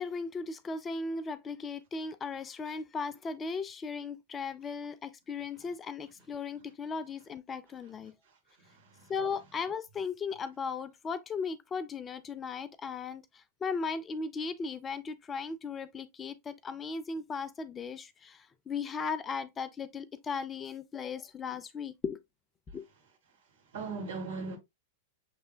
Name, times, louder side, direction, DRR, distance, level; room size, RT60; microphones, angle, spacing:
voice 1, 0.0-8.1 9.1-22.2 22.7-22.8, left 5 dB, 20° left, 0.4 m, -37 dB
voice 2, 8.6-9.1 23.7-24.6, right 4 dB, 65° right, 2.2 m, -39 dB
6.8 x 3.2 x 2.2 m
figure-of-eight pair, 95°, 0 cm